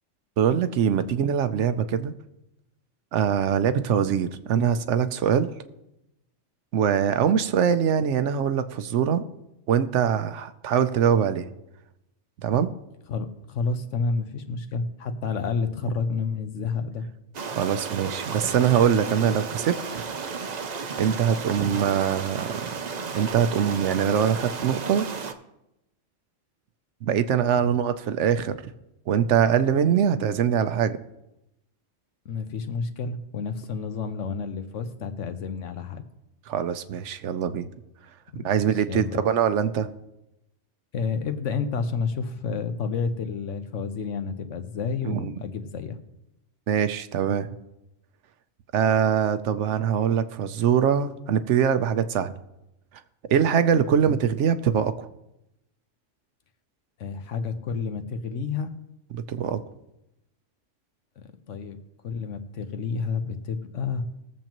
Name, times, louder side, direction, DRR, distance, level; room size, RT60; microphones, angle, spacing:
voice 1, 0.4-2.1 3.1-5.5 6.7-9.2 9.7-11.5 12.4-12.7 17.6-20.0 21.0-22.6 23.1-25.1 27.0-28.6 29.1-31.0 36.5-37.7 38.4-39.9 45.0-45.3 46.7-47.5 48.7-52.4 53.3-55.1 59.3-59.6, right 8 dB, 70° right, 11 dB, 1.0 m, -23 dB
voice 2, 13.1-17.0 27.6-27.7 32.2-36.0 38.3-38.5 38.9-39.2 40.9-46.0 57.0-58.7 61.5-61.8 62.0-64.0, left 5 dB, 75° left, 8 dB, 1.2 m, -30 dB
sound 1, 17.3-25.3, right 5 dB, 45° right, 0.6 m, -33 dB
20.5 x 7.4 x 3.0 m, 0.90 s
omnidirectional pair, 1.3 m